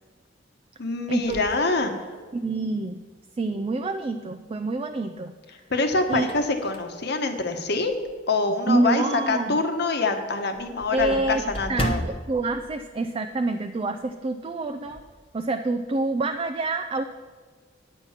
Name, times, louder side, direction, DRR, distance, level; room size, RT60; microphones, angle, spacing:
voice 1, 0.8-1.9 5.7-7.9 8.3-12.0, left 3 dB, 60° left, 6 dB, 1.1 m, -25 dB
sound 1, 1.2-2.6 3.1-3.2 4.7-5.2 5.7-8.3 8.7-8.9 9.2-9.3 9.6-9.7 10.0-13.8 14.0-14.2 14.6-15.2, equal, 30° left, 1.0 m, -36 dB
voice 2, 2.3-3.1 3.4-5.3 6.1-6.3 8.7-9.6 10.9-11.4 11.7-15.0 15.3-17.0, right 2 dB, 30° right, 7 dB, 0.4 m, -27 dB
9.8 x 7.3 x 5.7 m, 1.5 s
head